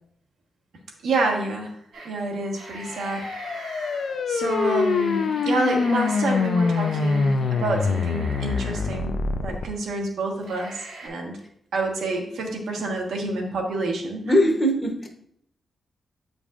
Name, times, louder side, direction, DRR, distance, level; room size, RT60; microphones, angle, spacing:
voice 1, 1.0-1.7 2.0-3.3 3.7-3.9 4.3-9.1 9.4-11.4 11.7-14.3, right 2 dB, 85° right, 1 dB, 1.2 m, -28 dB
sound 1, 1.9-2.1 2.4-9.3 9.8-9.9 10.4-11.1, right 2 dB, 65° right, 1.8 m, -42 dB
sound 2, 2.7-9.7, left 4 dB, 50° left, 0.4 m, -25 dB
voice 2, 14.2-15.1, equal, 20° left, 2 dB, 0.8 m, -20 dB
8.3 x 5.2 x 2.4 m, 0.70 s
wide cardioid pair, 170°, 0 cm